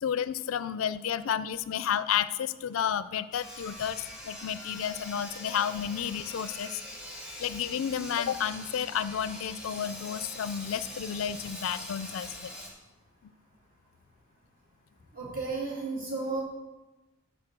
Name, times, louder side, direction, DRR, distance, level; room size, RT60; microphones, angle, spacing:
voice 1, 0.0-6.8 7.4-12.5 13.2-13.3, left 8 dB, 75° left, 15 dB, 0.4 m, -31 dB
Sawing, 3.3-12.7, left 1 dB, 5° right, 1.5 m, -43 dB
voice 2, 15.1-16.4, right 3 dB, 45° right, -4 dB, 2.7 m, -33 dB
8.6 x 4.9 x 6.1 m, 1.1 s
head